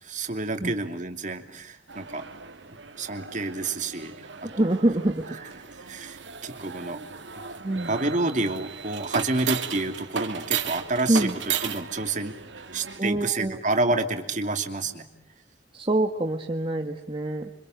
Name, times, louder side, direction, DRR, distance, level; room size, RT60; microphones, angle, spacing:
voice 1, 0.0-2.3 3.0-4.7 5.7-6.2 6.4-7.0 7.9-11.3 11.6-12.3 12.7-15.1, right 2 dB, 45° right, 6 dB, 2.8 m, -29 dB
sound 1, 1.9-13.0, right 7 dB, 85° right, 2.3 m, -35 dB
voice 2, 4.4-5.4 7.6-7.9 11.1-11.3 13.0-13.6 15.7-17.6, right 1 dB, 30° right, 3 dB, 1.5 m, -25 dB
28.5 x 26.0 x 7.8 m, 0.74 s
head